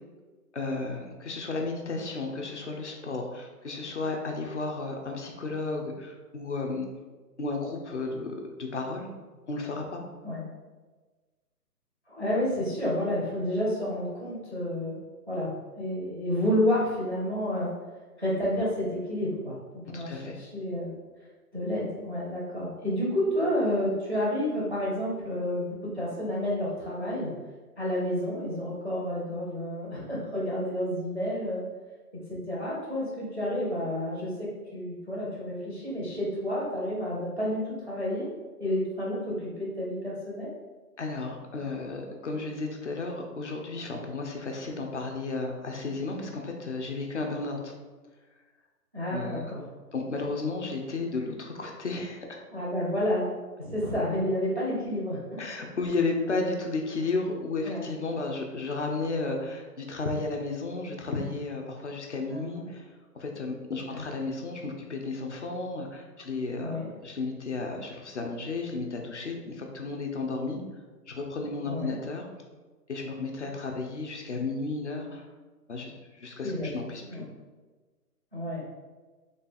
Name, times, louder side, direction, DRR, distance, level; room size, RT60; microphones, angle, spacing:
voice 1, 0.5-6.9 7.4-9.1 9.5-10.0 19.9-20.4 41.0-47.7 49.1-49.5 49.9-52.4 55.4-62.9 63.1-66.8 67.0-70.6 71.1-72.3 72.9-75.2 75.7-77.3, left 3 dB, 50° left, 2 dB, 0.6 m, -33 dB
voice 2, 12.1-15.0 15.3-15.5 15.8-17.7 18.2-20.9 21.5-27.3 27.8-31.6 32.3-38.3 38.6-40.5 48.9-49.6 52.5-55.2 57.6-57.9 62.3-62.8 63.9-64.0 66.6-66.9 71.6-72.0 76.4-76.7 77.0-77.2 78.3-78.6, left 1 dB, 35° right, -7 dB, 0.4 m, -30 dB
3.3 x 2.4 x 4.1 m, 1.3 s
hypercardioid pair, 170°, 47 cm